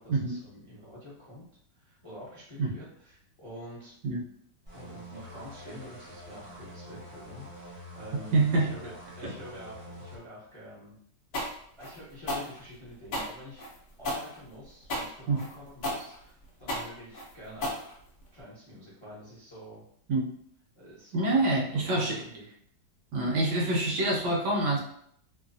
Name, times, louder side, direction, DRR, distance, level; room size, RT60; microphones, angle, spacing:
voice 1, 0.0-1.4 1.7-3.9 4.7-11.0 11.8-13.6 14.0-17.9 18.3-19.8 20.7-22.4, equal, 35° left, -8 dB, 0.5 m, -47 dB
sound 1, 4.7-10.2, equal, 30° right, 0.4 m, -46 dB
voice 2, 8.3-8.7 9.2-9.3 15.3-15.4 20.1-20.3 21.1-22.2 23.1-24.8, right 2 dB, 75° right, -1 dB, 1.2 m, -26 dB
sound 2, 11.3-18.4, left 1 dB, 65° left, 0.7 m, -34 dB
3.0 x 2.1 x 2.6 m, 0.67 s
omnidirectional pair, 1.9 m